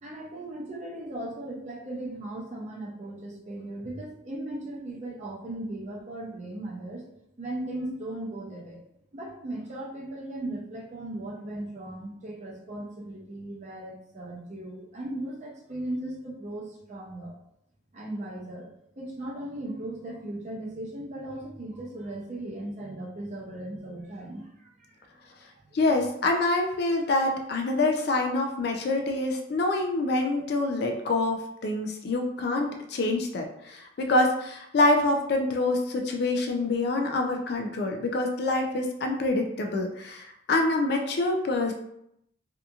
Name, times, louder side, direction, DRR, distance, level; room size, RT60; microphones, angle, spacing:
voice 1, 0.0-7.1 7.4-8.8 9.1-17.3 17.9-18.7 19.0-25.0, right 1 dB, 35° right, -4 dB, 0.6 m, -37 dB
voice 2, 25.7-41.7, left 2 dB, 50° left, 2 dB, 0.3 m, -26 dB
2.7 x 2.4 x 2.3 m, 0.77 s
head